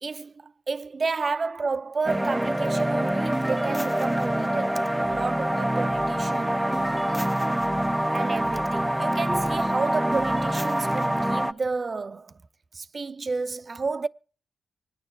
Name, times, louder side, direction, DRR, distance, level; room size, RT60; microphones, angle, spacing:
voice 1, 0.0-6.6 8.1-12.4 12.7-14.1, right 4 dB, 40° right, 0.6 m, -31 dB
sound 1, 2.0-11.5, right 1 dB, 10° right, 0.7 m, -25 dB
25.0 x 9.6 x 4.4 m
cardioid pair, 75°, 0 cm